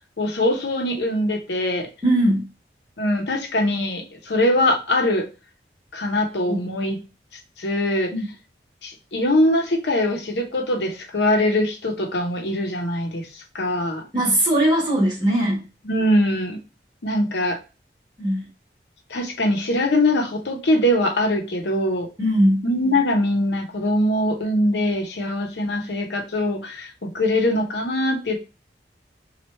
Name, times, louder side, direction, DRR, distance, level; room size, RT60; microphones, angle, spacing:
voice 1, 0.2-1.9 3.0-5.3 5.9-7.0 7.6-8.1 8.8-14.0 15.8-16.6 17.0-17.6 19.1-22.1 22.6-28.4, left 1 dB, 80° left, 3 dB, 0.8 m, -22 dB
voice 2, 2.0-2.5 6.5-6.7 8.1-8.2 14.1-15.6 18.2-18.4 22.2-22.6, right 1 dB, 25° right, -3 dB, 1.4 m, -20 dB
3.0 x 2.4 x 4.3 m, 0.31 s
head